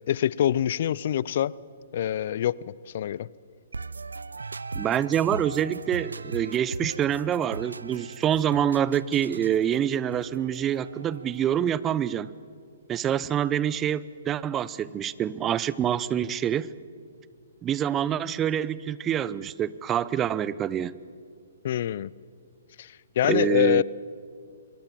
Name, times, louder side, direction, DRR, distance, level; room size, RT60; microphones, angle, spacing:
voice 1, 0.1-1.5 1.9-3.3 21.6-22.1 22.8-23.8, left 11 dB, 55° left, 0.6 m, -25 dB
sound 1, 3.7-11.6, right 4 dB, 85° right, 0.5 m, -39 dB
voice 2, 4.7-12.3 12.9-16.7 17.6-21.0 23.3-23.8, right 10 dB, 20° right, 0.7 m, -26 dB
26.0 x 23.0 x 7.5 m
hypercardioid pair, 130°, 0 cm